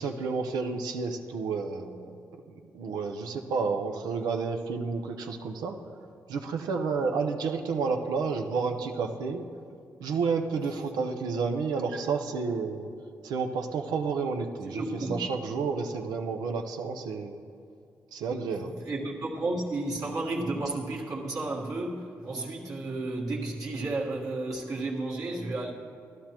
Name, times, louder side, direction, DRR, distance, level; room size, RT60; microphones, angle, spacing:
voice 1, 0.0-2.1 2.5-5.8 6.3-9.5 10.0-12.9 13.2-14.8 15.1-17.4 18.1-18.8, right 5 dB, 85° right, 3 dB, 0.7 m, -30 dB
voice 2, 14.7-15.2 18.6-25.7, right 2 dB, 60° right, -6 dB, 1.6 m, -32 dB
14.0 x 11.5 x 3.0 m, 2.3 s
supercardioid pair, 55°, 7 cm